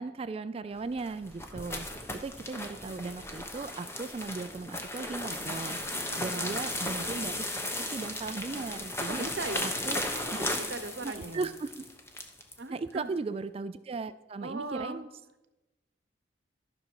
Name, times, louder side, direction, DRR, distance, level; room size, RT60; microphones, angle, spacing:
voice 1, 0.0-5.8 6.2-7.5 7.8-9.3 9.6-10.0 10.3-10.5 11.0-11.7 12.7-15.1, right 3 dB, 30° right, 14 dB, 0.3 m, -37 dB
sound 1, 0.8-12.6, left 1 dB, 15° left, 1.0 m, -36 dB
voice 2, 6.1-6.6 9.1-10.2 10.5-11.5 12.6-13.1 14.4-15.0, right 2 dB, 65° right, 10 dB, 0.9 m, -39 dB
12.5 x 6.3 x 4.7 m, 1.0 s
head